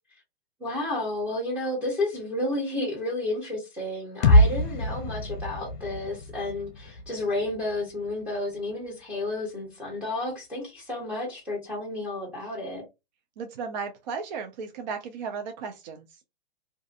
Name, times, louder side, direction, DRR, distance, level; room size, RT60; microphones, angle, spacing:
voice 1, 0.6-12.8, left 2 dB, 5° right, 0.7 m, -31 dB
sound 1, 4.2-8.1, left 1 dB, 50° left, 0.6 m, -24 dB
voice 2, 13.4-16.1, right 5 dB, 50° right, 0.5 m, -35 dB
2.5 x 2.5 x 2.4 m
hypercardioid pair, 145°, 30 cm